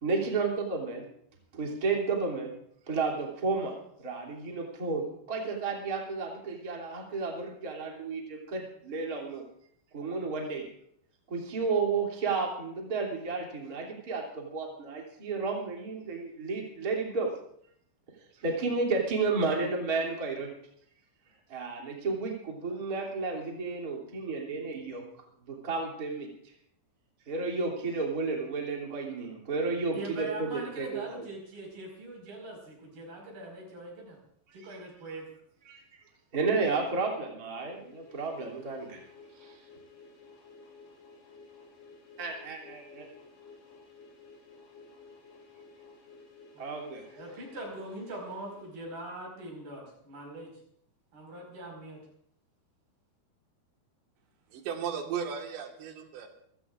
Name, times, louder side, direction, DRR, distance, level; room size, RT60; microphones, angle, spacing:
voice 1, 0.0-1.0 1.5-2.5 2.9-3.7 4.0-9.4 9.9-10.6 11.3-17.3 18.4-20.5 21.5-25.0 25.5-26.3 27.3-31.2 35.7-36.0 36.3-39.0 39.4-39.5 42.2-43.1 46.6-47.0, right 4 dB, 25° right, -2 dB, 2.9 m, -32 dB
voice 2, 29.9-34.2 34.5-35.3 36.5-36.7 46.5-46.6 47.1-50.5 51.1-52.0, right 2 dB, 60° right, 0 dB, 7.1 m, -42 dB
sound 1, 37.5-49.3, left 4 dB, 85° left, 8.4 m, -54 dB
voice 3, 54.5-56.3, right 7 dB, 85° right, 3 dB, 3.9 m, -35 dB
28.0 x 16.0 x 2.5 m, 0.69 s
omnidirectional pair, 4.9 m